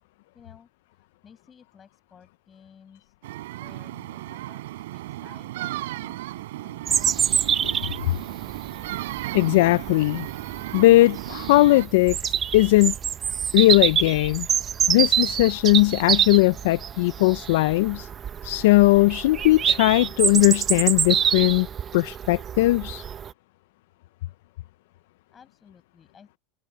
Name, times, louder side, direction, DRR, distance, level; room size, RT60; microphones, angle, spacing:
voice 1, 0.3-0.7 0.9-3.1 3.6-7.3 25.3-26.4, left 7 dB, 20° left, 6.7 m, -54 dB
sound 1, 3.2-11.9, right 16 dB, 85° right, 3.6 m, -35 dB
Bird vocalization bird call bird song, 6.9-23.3, right 8 dB, 25° right, 0.7 m, -26 dB
voice 2, 9.3-10.3 10.7-12.9 13.5-14.5 14.9-18.1 18.4-21.7 21.9-23.0, left 19 dB, 70° left, 0.4 m, -19 dB
supercardioid pair, 150°, 0 cm